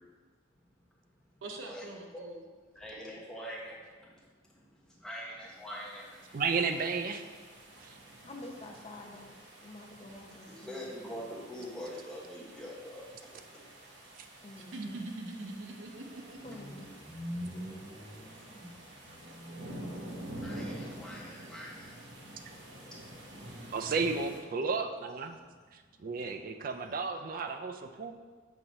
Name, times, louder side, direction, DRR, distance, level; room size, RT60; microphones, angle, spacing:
voice 1, 1.4-2.4 14.6-16.6, right 2 dB, 85° right, 1 dB, 0.7 m, -42 dB
voice 2, 2.7-6.2 8.1-8.2 10.3-13.0 16.5-23.7, equal, 5° left, -6 dB, 1.1 m, -45 dB
sound 1, 5.6-24.4, right 1 dB, 65° right, 1.0 m, -48 dB
voice 3, 6.3-7.2 7.8-8.0 23.7-25.4 25.7-28.1, right 4 dB, 45° right, 6 dB, 0.4 m, -33 dB
voice 4, 8.2-9.3 9.6-10.9 14.4-15.0 16.3-17.0, left 2 dB, 30° left, 1 dB, 0.7 m, -48 dB
6.3 x 2.9 x 5.3 m, 1.5 s
head